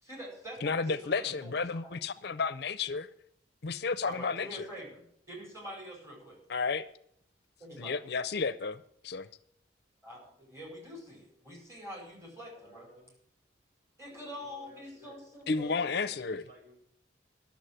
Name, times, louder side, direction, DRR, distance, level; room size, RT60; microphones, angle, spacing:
voice 1, 0.0-1.5 1.8-1.9 4.0-6.4 7.6-8.0 10.0-12.9 14.0-16.0, equal, 15° right, 5.0 m, -45 dB
voice 2, 0.6-3.1 3.6-4.7 6.5-6.9 7.8-9.3 15.5-16.4, left 4 dB, 60° left, 0.6 m, -32 dB
voice 3, 12.5-13.1 14.1-15.2 16.0-16.8, left 1 dB, 50° right, 5.9 m, -57 dB
11.5 x 7.1 x 9.0 m
head